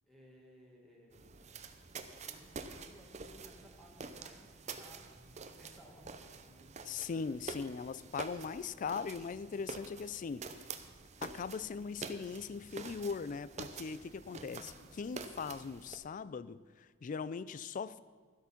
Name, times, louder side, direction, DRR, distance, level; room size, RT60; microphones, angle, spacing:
voice 1, 0.1-1.5 2.1-6.9 14.3-14.9, equal, ahead, -3 dB, 1.8 m, -60 dB
sound 1, 1.1-16.0, right 4 dB, 35° right, 0.7 m, -48 dB
voice 2, 6.8-10.5 11.2-18.0, left 5 dB, 40° left, 17 dB, 0.3 m, -40 dB
13.0 x 8.1 x 5.9 m, 1.5 s
head